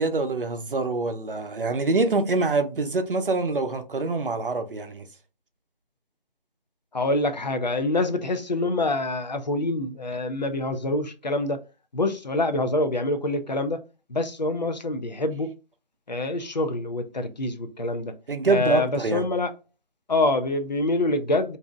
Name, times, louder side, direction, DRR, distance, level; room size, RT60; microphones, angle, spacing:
voice 1, 0.0-5.1 18.3-19.3, right 3 dB, 65° right, 0.7 m, -25 dB
voice 2, 6.9-11.6 11.9-13.8 14.1-15.5 16.1-18.1 18.5-19.5 20.1-21.6, left 2 dB, 50° left, 0.5 m, -26 dB
2.6 x 2.0 x 3.5 m
figure-of-eight pair, 165°, 29 cm